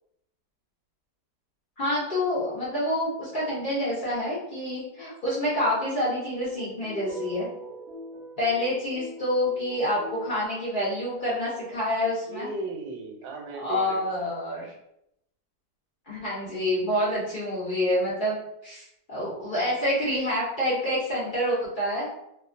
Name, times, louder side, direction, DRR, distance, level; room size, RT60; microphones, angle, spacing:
voice 1, 1.8-7.5 8.4-12.5 13.6-14.7 16.1-18.4 18.6-22.1, left 1 dB, 70° left, -8 dB, 0.5 m, -27 dB
sound 1, 6.4-10.6, right 1 dB, 55° right, 0.9 m, -43 dB
voice 2, 12.0-14.6, right 3 dB, 80° right, 1 dB, 1.3 m, -37 dB
2.8 x 2.3 x 2.4 m, 0.81 s
omnidirectional pair, 1.9 m